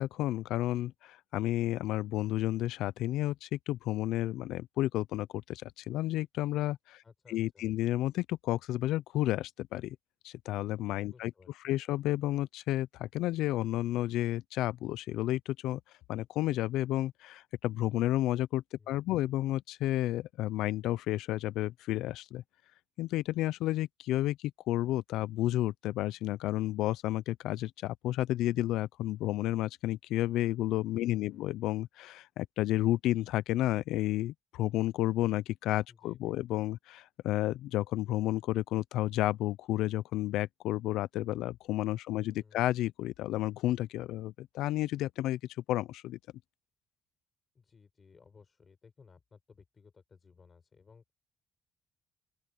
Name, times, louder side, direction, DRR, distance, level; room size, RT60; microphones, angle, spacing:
voice 1, 0.0-7.0 7.3-10.0 10.2-11.3 11.6-15.8 16.1-22.4 23.0-45.4 45.7-46.2, left 15 dB, 85° left, 0.5 m, -31 dB
voice 2, 7.0-7.7 11.1-11.8 18.8-19.3 31.0-31.5 35.9-36.4 42.1-42.6 47.5-51.1, left 5 dB, 30° left, 5.2 m, -59 dB
open air
cardioid pair, 115°, 0 cm